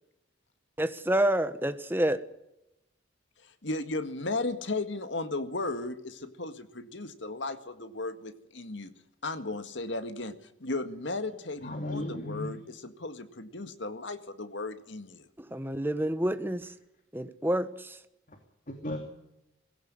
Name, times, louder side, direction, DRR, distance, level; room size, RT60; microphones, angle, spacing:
voice 1, 0.8-2.2 15.4-16.7 17.1-18.0, right 1 dB, 10° right, 1.2 m, -28 dB
voice 2, 3.6-8.9 9.2-10.4 10.6-15.3, left 2 dB, 75° left, 1.9 m, -35 dB
voice 3, 11.6-12.5 18.7-19.0, left 1 dB, 40° left, 2.8 m, -35 dB
19.5 x 17.0 x 9.7 m
head